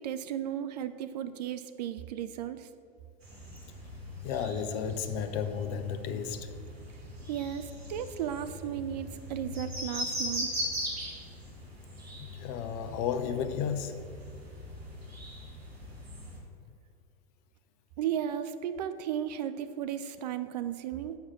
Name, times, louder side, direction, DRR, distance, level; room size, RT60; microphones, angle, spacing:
voice 1, 0.0-2.7 7.3-10.5 18.0-21.2, right 10 dB, 45° right, 11 dB, 0.4 m, -35 dB
sound 1, 3.2-16.4, equal, 75° right, 2.1 m, -40 dB
voice 2, 4.2-6.5 12.2-14.0, left 7 dB, 35° left, 9 dB, 0.7 m, -33 dB
6.3 x 5.8 x 7.2 m, 2.3 s
figure-of-eight pair, 90°, 31 cm